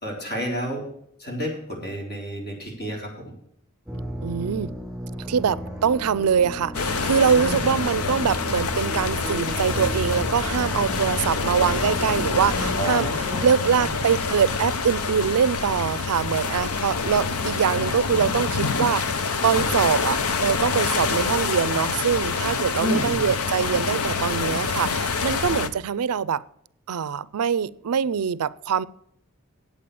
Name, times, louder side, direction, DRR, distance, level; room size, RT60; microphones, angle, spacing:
voice 1, 0.0-0.9 1.2-3.3 7.3-7.7 12.8-14.0 22.8-23.6, equal, 50° left, 4.1 m, -31 dB
sound 1, 3.9-12.7, equal, ahead, 4.1 m, -34 dB
voice 2, 4.2-4.7 5.3-13.1 13.4-26.4 26.9-28.9, right 7 dB, 85° right, 0.4 m, -23 dB
sound 2, 6.7-25.7, left 4 dB, 80° left, 0.8 m, -26 dB
8.8 x 8.6 x 6.9 m
head